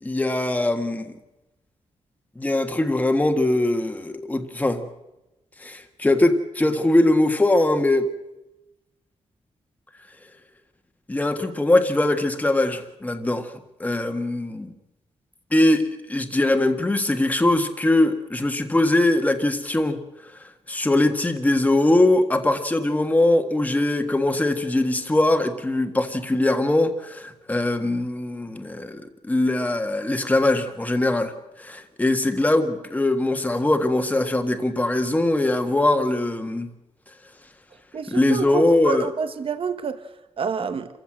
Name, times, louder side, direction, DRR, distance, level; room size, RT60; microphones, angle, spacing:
voice 1, 0.0-1.2 2.3-4.9 5.6-8.1 11.1-13.5 13.8-14.7 15.5-15.8 16.1-20.0 20.7-31.3 31.6-36.7 38.1-39.1, left 2 dB, 15° left, 1.6 m, -21 dB
voice 2, 37.9-40.0 40.4-40.9, right 6 dB, 50° right, 1.2 m, -28 dB
27.5 x 15.0 x 7.7 m
wide cardioid pair, 150°, 12 cm